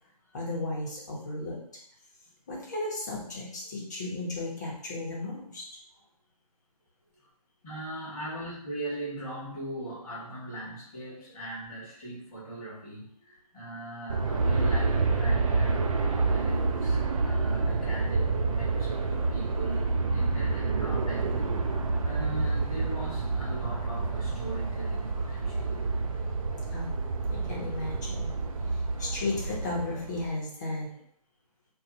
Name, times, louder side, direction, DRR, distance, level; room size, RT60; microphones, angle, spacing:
voice 1, 0.3-1.6 2.5-5.6 26.7-27.0 27.3-28.3 28.7-30.9, left 2 dB, 25° left, -3 dB, 0.8 m, -34 dB
voice 2, 7.6-21.3 22.0-25.8 28.9-29.2, right 1 dB, 5° left, -18 dB, 0.4 m, -40 dB
Aircraft, 14.1-30.3, right 3 dB, 60° right, 0.5 m, -28 dB
4.0 x 2.2 x 2.7 m, 0.67 s
hypercardioid pair, 165°, 20 cm